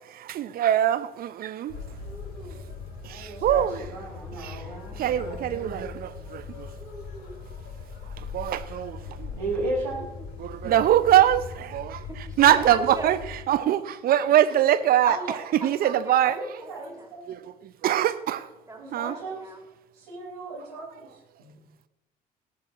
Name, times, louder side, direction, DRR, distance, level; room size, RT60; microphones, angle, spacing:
voice 1, 0.0-1.8 3.0-3.9 4.3-4.7 4.9-6.7 8.1-9.3 10.4-12.0 12.4-15.2 15.5-16.4 17.3-18.5 18.9-19.2, right 11 dB, 50° right, 0.8 m, -23 dB
sound 1, 1.7-13.4, left 5 dB, 60° left, 3.0 m, -40 dB
voice 2, 2.0-2.6 4.2-4.8 5.8-5.9 6.7-7.4 10.0-10.3 12.0-13.1 15.0-16.4 16.6-17.1 18.7-19.6, right 2 dB, 15° right, 5.4 m, -39 dB
voice 3, 3.0-3.6 3.9-5.4 9.3-10.1 16.2-17.2 18.8-19.4 19.9-21.1 21.4-21.6, right 2 dB, 75° right, 5.6 m, -35 dB
18.5 x 13.0 x 3.1 m
figure-of-eight pair, 55°, 20 cm